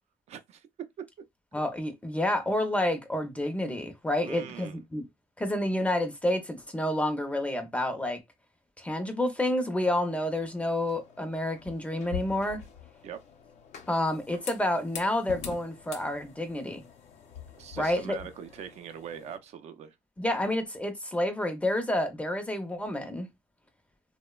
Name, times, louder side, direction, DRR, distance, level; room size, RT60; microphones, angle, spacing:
voice 1, 0.3-0.7 4.2-4.8 13.0-13.2 17.6-20.0, right 8 dB, 60° right, 0.4 m, -42 dB
voice 2, 1.5-5.0 5.4-8.2 8.8-12.6 13.9-16.8 17.8-18.2 20.2-23.3, left 1 dB, 10° left, 0.5 m, -29 dB
sound 1, 10.1-19.4, left 8 dB, 65° left, 0.6 m, -45 dB
2.8 x 2.0 x 2.2 m
cardioid pair, 120°, 13 cm